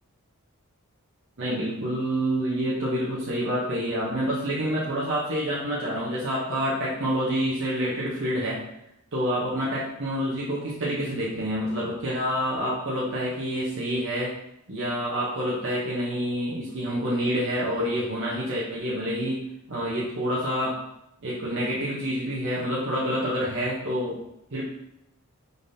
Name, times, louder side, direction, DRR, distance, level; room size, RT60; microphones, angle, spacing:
voice 1, 1.4-8.6 9.1-14.3 14.7-19.4 19.7-20.7 21.2-24.2 24.5-24.6, equal, 60° right, -7 dB, 0.9 m, -27 dB
5.2 x 3.5 x 2.7 m, 0.81 s
head